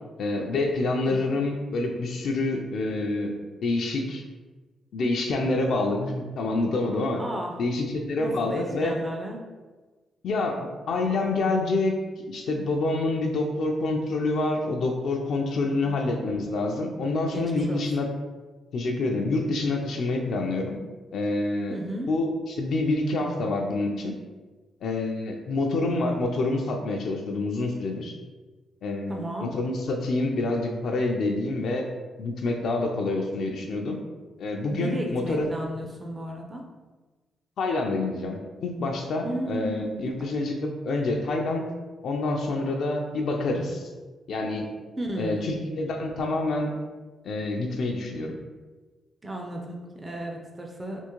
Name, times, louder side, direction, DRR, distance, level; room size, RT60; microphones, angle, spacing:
voice 1, 0.2-3.3 3.6-4.2 4.9-7.2 7.6-9.0 10.2-18.1 18.7-20.8 21.1-21.8 22.1-24.1 24.8-28.1 28.8-31.9 32.2-34.0 34.4-35.5 37.6-41.7 42.0-43.8 44.3-44.7 45.2-46.7 47.2-48.4, left 2 dB, 65° left, 2 dB, 0.4 m, -27 dB
voice 2, 7.2-7.5 8.2-9.4 17.3-17.8 21.7-22.1 29.1-29.5 34.7-36.6 39.2-40.0 45.0-45.5 49.2-51.0, right 1 dB, 20° right, 1 dB, 0.4 m, -34 dB
3.6 x 2.5 x 3.0 m, 1.3 s
cardioid pair, 140°, 0 cm